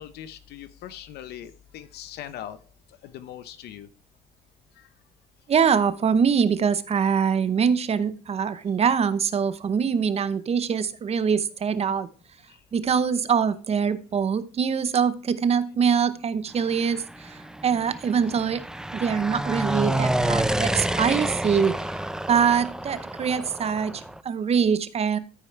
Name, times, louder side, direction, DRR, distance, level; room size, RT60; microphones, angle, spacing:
voice 1, 0.0-2.6 3.0-3.9 4.8-4.9, left 11 dB, 75° left, 13 dB, 0.8 m, -40 dB
voice 2, 5.5-12.1 12.7-18.6 18.9-21.8 22.3-25.2, right 6 dB, 40° right, 14 dB, 0.8 m, -23 dB
sound 1, 16.7-24.2, right 1 dB, 5° right, 0.4 m, -29 dB
13.5 x 4.9 x 3.2 m, 0.37 s
cardioid pair, 110°, 17 cm